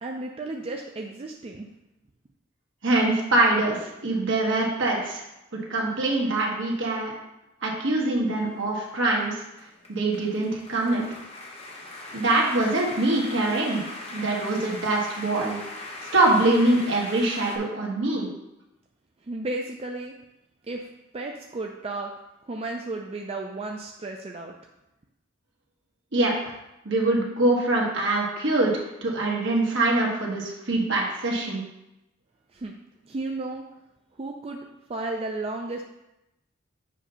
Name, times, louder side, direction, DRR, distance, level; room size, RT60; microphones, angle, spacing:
voice 1, 0.0-1.7 19.2-20.1 20.7-20.9 21.1-22.1 22.4-24.5 32.5-32.7 33.0-33.6 34.1-34.6 34.9-35.8, right 2 dB, 30° right, 1 dB, 0.4 m, -33 dB
voice 2, 2.8-5.2 5.7-7.1 7.6-9.4 9.9-11.0 12.1-13.8 14.1-15.6 16.1-18.3 26.1-26.5 26.8-31.6, right 2 dB, 65° right, -2 dB, 1.4 m, -24 dB
sound 1, 8.3-17.6, left 2 dB, 30° left, 0.9 m, -40 dB
7.2 x 2.8 x 5.5 m, 0.91 s
head